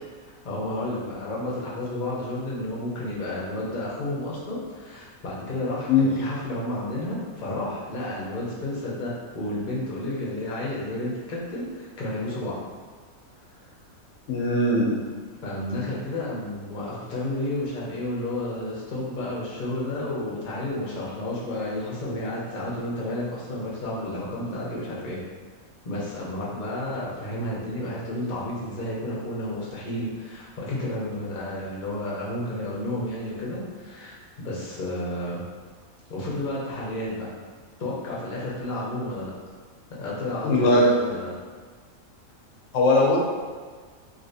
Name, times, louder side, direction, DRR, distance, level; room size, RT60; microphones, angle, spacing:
voice 1, 0.2-12.6 13.5-13.7 15.4-25.2 25.8-35.4 36.1-37.2 37.8-39.3 40.0-41.3, left 1 dB, 40° left, -6 dB, 0.8 m, -31 dB
voice 2, 14.3-14.9 40.4-40.9 42.7-43.2, left 2 dB, 70° left, -2 dB, 1.0 m, -19 dB
3.1 x 2.9 x 2.7 m, 1.5 s
omnidirectional pair, 1.4 m